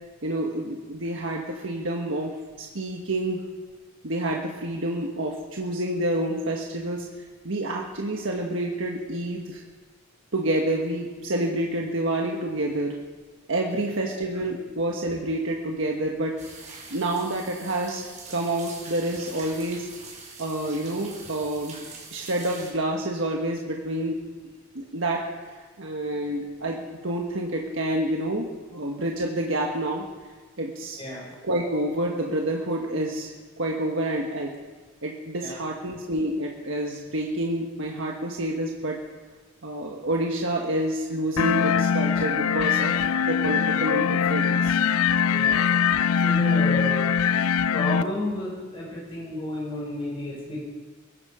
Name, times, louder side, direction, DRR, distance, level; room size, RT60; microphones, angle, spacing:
voice 1, 0.2-3.4 4.0-7.0 7.4-9.6 10.3-12.9 13.5-16.4 16.9-19.9 20.4-21.8 22.1-24.2 24.7-25.3 25.5-30.0 30.6-31.0 31.4-34.5 35.0-39.0 39.6-44.8, right 1 dB, 60° right, 0 dB, 1.5 m, -28 dB
sound 1, 16.4-22.7, right 4 dB, 35° right, 4.3 m, -43 dB
sound 2, 41.4-48.0, left 7 dB, 85° left, 0.4 m, -22 dB
voice 2, 45.3-45.6 46.2-47.1 47.7-50.6, left 1 dB, 25° left, -5 dB, 5.1 m, -32 dB
22.0 x 13.0 x 5.1 m, 1.3 s
head